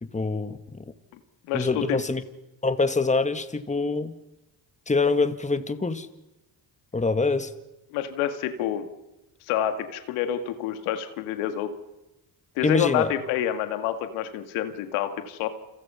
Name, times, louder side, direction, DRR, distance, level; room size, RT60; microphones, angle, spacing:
voice 1, 0.0-0.8 1.5-2.2 2.6-4.1 4.9-6.1 6.9-7.5 12.6-13.1, left 3 dB, 15° left, 1.9 m, -25 dB
voice 2, 1.4-2.0 7.9-8.9 9.5-11.7 12.6-15.5, left 10 dB, 90° left, 2.0 m, -28 dB
29.0 x 27.0 x 5.7 m
supercardioid pair, 70°, 47 cm